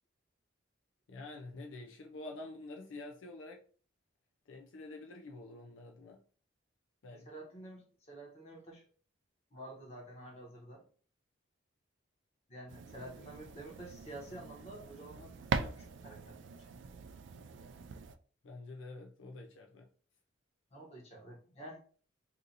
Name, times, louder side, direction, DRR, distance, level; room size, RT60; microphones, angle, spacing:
voice 1, 1.1-3.6 4.5-6.2 7.0-7.3 18.4-19.9, left 2 dB, 70° left, 0.5 m, -47 dB
voice 2, 7.1-8.8 9.5-10.8 12.5-16.5 20.7-21.8, right 1 dB, 30° left, 1.2 m, -49 dB
sound 1, 12.7-18.2, right 5 dB, 60° right, 0.3 m, -42 dB
2.8 x 2.5 x 3.9 m
head